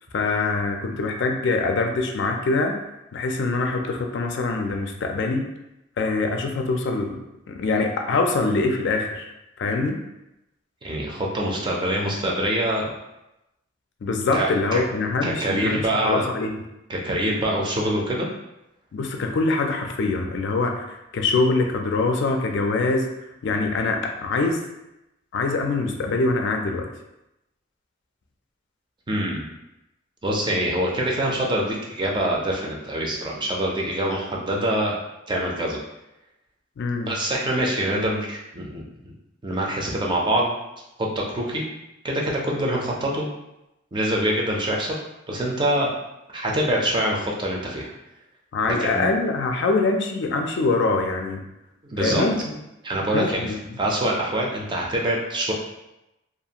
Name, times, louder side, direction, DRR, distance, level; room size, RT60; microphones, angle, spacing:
voice 1, 0.1-2.8 3.1-5.5 6.0-7.2 7.5-9.3 9.6-10.0 14.0-16.6 18.9-23.1 23.4-24.6 25.3-26.9 36.8-37.1 48.5-51.4 52.0-52.5 52.9-53.8, left 3 dB, 65° left, 3 dB, 0.4 m, -24 dB
voice 2, 10.8-12.9 14.3-14.8 15.2-16.3 16.9-18.3 29.1-29.5 30.2-34.9 35.3-35.8 37.1-39.1 39.4-40.5 41.0-41.7 42.0-43.3 43.9-44.9 45.3-45.9 46.3-47.9 48.8-49.1 51.9-52.2 52.8-53.5 53.8-55.5, right 1 dB, 25° right, -2 dB, 0.5 m, -25 dB
2.5 x 2.4 x 2.8 m, 0.91 s
head